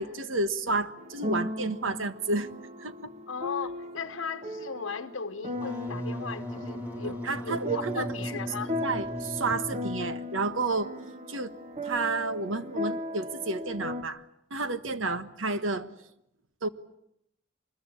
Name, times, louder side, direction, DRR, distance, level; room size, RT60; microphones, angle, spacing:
voice 1, 0.0-2.5 2.8-3.1 7.0-8.1 8.8-10.9 11.3-11.6 11.8-14.2 14.5-15.9 16.6-16.7, right 3 dB, 80° right, 1.5 m, -31 dB
sound 1, 1.0-14.0, left 1 dB, 35° right, 1.4 m, -37 dB
voice 2, 3.3-8.8 15.1-15.2, left 5 dB, 85° left, 1.0 m, -37 dB
Wind instrument woodwind instrument, 5.5-10.1, equal, 10° right, 5.7 m, -37 dB
24.0 x 21.0 x 9.9 m
head